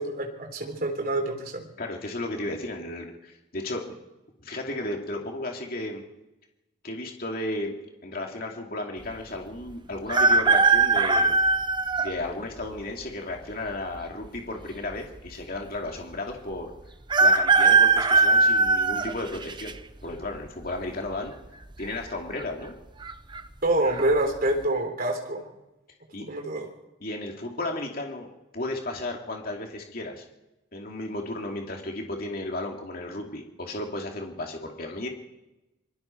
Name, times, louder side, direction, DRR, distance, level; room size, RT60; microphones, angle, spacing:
voice 1, 0.0-1.6 23.6-25.5 26.2-26.7, right 1 dB, 45° right, 3 dB, 3.6 m, -26 dB
voice 2, 1.8-3.9 4.4-6.0 6.8-7.7 8.0-11.4 12.0-16.7 17.2-19.7 20.0-21.3 21.8-22.7 26.1-26.2 27.0-28.3 28.5-30.2 30.7-35.1, left 2 dB, 45° left, 1 dB, 2.7 m, -34 dB
sound 1, 10.1-12.1 12.8-12.9 14.0-14.6 14.9-15.0 15.2-15.3 17.1-19.7 20.2-20.6 21.8-22.1 22.4-22.5 23.0-23.4 23.9-24.0, right 4 dB, 25° right, 0.8 m, -20 dB
25.0 x 22.5 x 4.6 m, 0.98 s
head